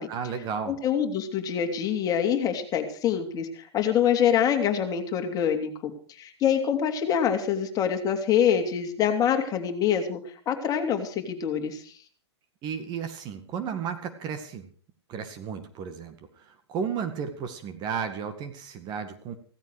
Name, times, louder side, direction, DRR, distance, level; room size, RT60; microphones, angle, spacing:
voice 1, 0.1-0.8 12.6-14.7 15.1-19.4, right 7 dB, 30° right, 8 dB, 2.1 m, -33 dB
voice 2, 0.7-12.0, left 8 dB, 25° left, 5 dB, 3.0 m, -25 dB
16.5 x 15.0 x 4.9 m, 0.43 s
hypercardioid pair, 115°, 14 cm